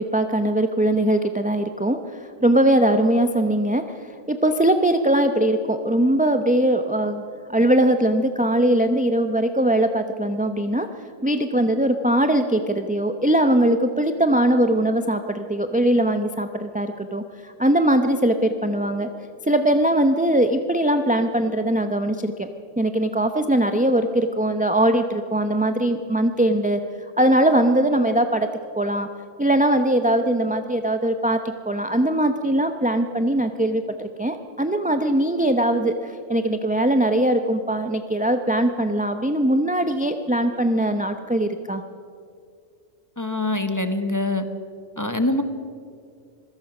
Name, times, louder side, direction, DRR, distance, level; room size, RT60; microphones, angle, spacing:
voice 1, 0.0-3.8 4.3-7.2 7.5-10.9 11.2-19.1 19.4-22.5 22.8-26.8 27.2-28.5 28.7-29.1 29.4-41.8, right 1 dB, 10° right, 7 dB, 0.7 m, -21 dB
voice 2, 43.2-44.4 45.0-45.4, left 2 dB, 15° left, 8 dB, 1.2 m, -24 dB
25.5 x 17.0 x 6.1 m, 2.3 s
omnidirectional pair, 1.1 m